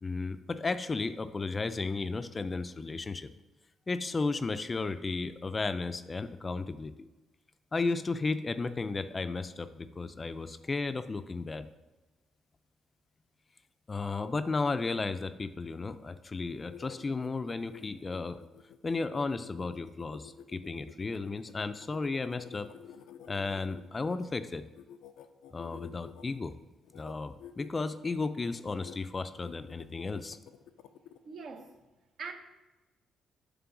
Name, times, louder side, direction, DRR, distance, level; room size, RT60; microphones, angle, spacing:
voice 1, 0.0-3.3 3.9-7.1 7.7-11.7 13.9-18.4 18.8-22.7 23.3-24.6 25.5-26.5 26.9-30.4, left 3 dB, 30° left, 0.4 m, -34 dB
sound 1, 16.5-24.3 24.7-26.4 26.8-27.1 27.4-27.7 28.0-29.0 29.4-31.2, left 9 dB, 90° left, 0.4 m, -51 dB
voice 2, 31.2-31.8 32.2-32.3, right 5 dB, 60° right, 0.9 m, -42 dB
7.6 x 3.3 x 6.0 m
cardioid pair, 90°, 0 cm